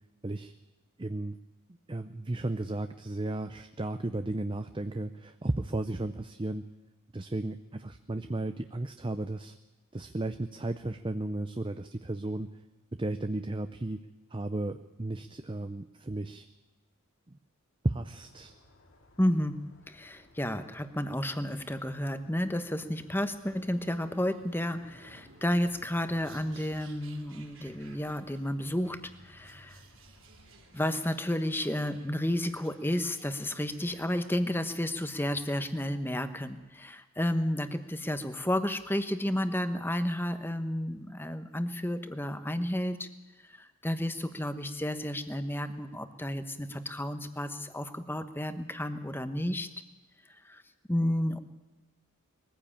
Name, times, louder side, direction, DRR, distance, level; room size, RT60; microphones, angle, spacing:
voice 1, 1.0-1.4 1.9-6.6 7.1-9.5 9.9-12.5 13.0-14.0 14.3-16.5 17.3-17.4 17.8-18.5, right 2 dB, 25° right, 9 dB, 0.6 m, -34 dB
sound 1, 18.1-30.9, left 1 dB, 70° left, 3.2 m, -60 dB
voice 2, 19.2-19.6 19.9-29.8 30.7-43.1 43.4-49.7 50.3-50.6 50.9-51.4, left 1 dB, 10° left, 10 dB, 1.1 m, -32 dB
sound 2, 23.1-35.9, right 3 dB, 65° right, 3.0 m, -57 dB
21.5 x 15.0 x 8.8 m, 1.1 s
head